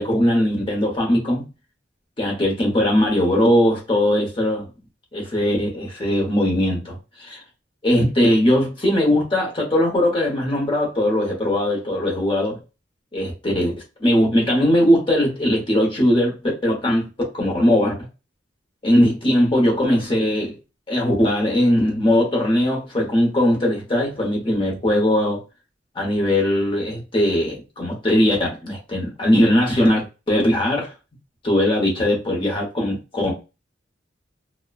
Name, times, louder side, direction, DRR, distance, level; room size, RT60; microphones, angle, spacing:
voice 1, 0.0-1.4 2.2-4.7 5.1-7.4 7.8-12.6 13.1-13.7 14.0-16.4 16.6-17.9 18.8-20.5 20.9-25.4 25.9-30.9 31.4-33.3, left 1 dB, 30° left, 1.0 m, -20 dB
2.9 x 2.1 x 2.3 m
head